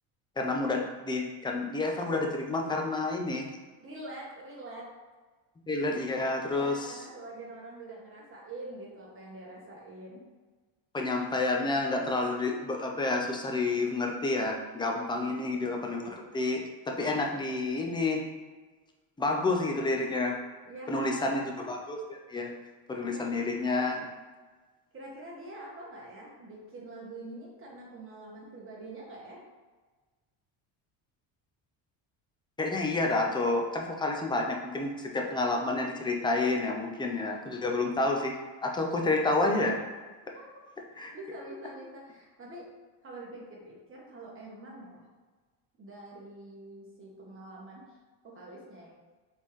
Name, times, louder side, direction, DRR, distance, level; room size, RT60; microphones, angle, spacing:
voice 1, 0.4-3.5 5.7-6.8 10.9-18.2 19.2-20.4 20.9-22.5 22.9-24.0 32.6-39.8 41.0-41.1, left 2 dB, 10° left, 1 dB, 0.3 m, -29 dB
voice 2, 3.8-4.9 6.5-10.2 15.2-15.4 20.6-21.3 23.1-23.2 23.6-24.1 24.9-29.4 40.3-40.6 41.1-42.7 43.0-45.0 45.8-48.0 48.2-48.9, right 2 dB, 25° right, -3 dB, 1.3 m, -45 dB
4.3 x 3.5 x 3.0 m, 1.3 s
cardioid pair, 130°, 46 cm